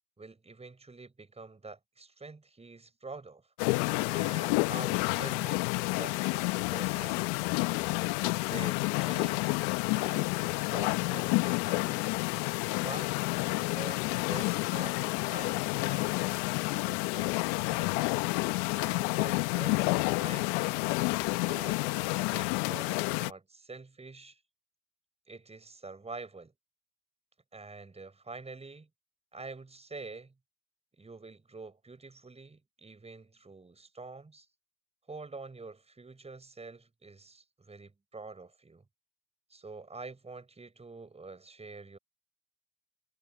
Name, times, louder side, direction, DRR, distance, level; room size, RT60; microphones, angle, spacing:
voice 1, 0.2-3.4 4.1-7.3 8.2-9.5 9.9-12.0 12.8-13.1 13.6-18.0 18.7-20.9 21.5-24.4 25.3-26.5 27.5-28.9 29.3-30.3 31.0-34.5 35.1-38.8 39.5-42.0, right 3 dB, 15° right, 6.3 m, -46 dB
sound 1, 3.6-23.3, left 27 dB, 70° left, 1.3 m, -29 dB
hypercardioid pair, 75°, 36 cm